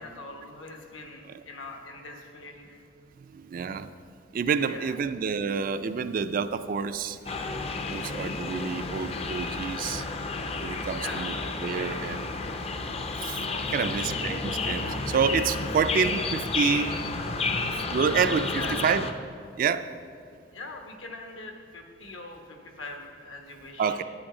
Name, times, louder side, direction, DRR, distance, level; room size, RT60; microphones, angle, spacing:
voice 1, 0.0-2.8 4.6-5.0 10.9-11.4 13.8-14.1 18.5-19.0 20.5-24.0, left 2 dB, 75° left, 3 dB, 1.2 m, -42 dB
voice 2, 3.3-3.9 4.3-7.2 7.9-10.0 10.6-11.4 11.6-12.3 12.5-12.6 13.2-16.9 17.9-19.1 19.6-19.9 23.8-24.0, right 6 dB, 45° right, 11 dB, 0.3 m, -28 dB
sound 1, 7.3-19.1, left 3 dB, 30° left, 0.5 m, -31 dB
sound 2, 13.4-18.8, equal, 55° left, 1.2 m, -40 dB
9.0 x 8.7 x 4.9 m, 2.3 s
head